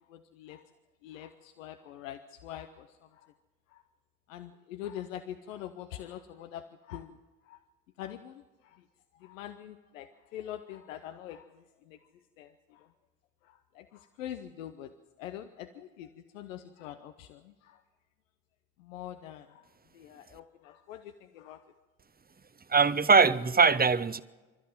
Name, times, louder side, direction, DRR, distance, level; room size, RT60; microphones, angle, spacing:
voice 1, 0.1-0.6 1.0-3.2 3.7-3.8 4.3-7.2 7.5-7.6 8.0-8.8 9.2-12.0 12.4-12.9 13.4-14.9 15.2-16.1 16.3-17.8 18.8-19.6 19.9-21.6, left 11 dB, 85° left, 0.7 m, -44 dB
voice 2, 22.7-24.2, right 5 dB, 25° right, 0.9 m, -22 dB
26.5 x 13.0 x 7.7 m
hypercardioid pair, 40°, 38 cm